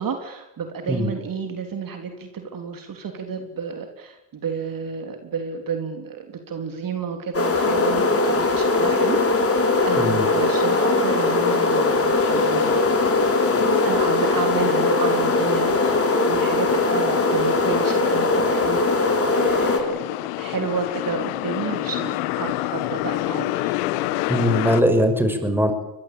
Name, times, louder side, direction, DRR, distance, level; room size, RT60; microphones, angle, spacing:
voice 1, 0.0-9.2 9.5-12.8 13.8-20.0 20.4-23.7, right 5 dB, 50° right, 5 dB, 3.5 m, -31 dB
sound 1, 7.3-19.8, left 3 dB, 30° left, 5.2 m, -20 dB
voice 2, 10.0-10.3 24.3-25.7, equal, 5° right, 7 dB, 6.3 m, -20 dB
sound 2, 12.2-24.8, left 17 dB, 90° left, 1.3 m, -29 dB
23.5 x 20.5 x 8.7 m, 0.91 s
supercardioid pair, 70°, 43 cm